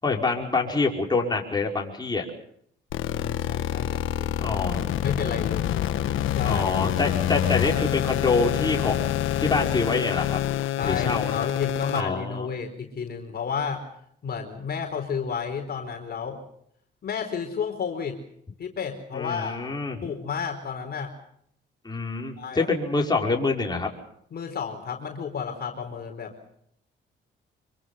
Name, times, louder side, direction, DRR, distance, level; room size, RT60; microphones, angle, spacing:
voice 1, 0.0-2.2 4.4-4.9 6.4-9.1 9.4-10.4 10.8-11.5 11.9-12.5 19.1-20.0 21.8-23.9, left 3 dB, 20° left, 0 dB, 5.3 m, -26 dB
sound 1, 2.9-12.0, left 12 dB, 85° left, 1.3 m, -26 dB
voice 2, 3.1-4.6 5.0-5.7 6.3-6.6 10.7-13.8 14.2-16.4 17.0-18.2 18.6-19.6 20.0-21.1 22.4-22.7 23.0-23.1 24.3-26.6, left 6 dB, 50° left, 3 dB, 4.4 m, -32 dB
26.0 x 24.0 x 5.7 m, 0.69 s
cardioid pair, 90°, 20 cm